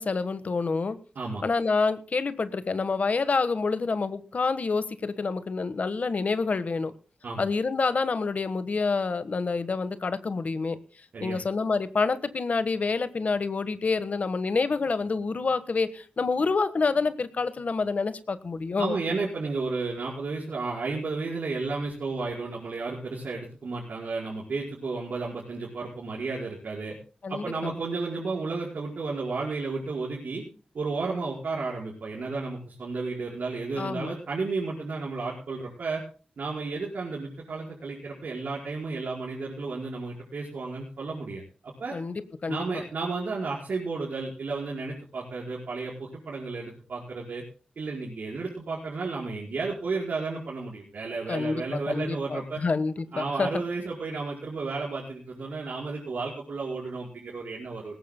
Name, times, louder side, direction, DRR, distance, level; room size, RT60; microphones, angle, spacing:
voice 1, 0.0-1.0 1.4-6.9 7.4-10.8 11.2-19.0 27.2-27.7 33.8-34.1 41.9-42.6 51.3-53.5, left 4 dB, 55° left, 12 dB, 1.3 m, -27 dB
voice 2, 18.8-26.9 27.3-30.4 30.7-36.0 36.4-41.9 42.5-47.4 47.8-52.6 53.1-58.0, right 3 dB, 70° right, -3 dB, 5.0 m, -32 dB
20.0 x 18.5 x 2.2 m, 0.40 s
cardioid pair, 75°, 3 cm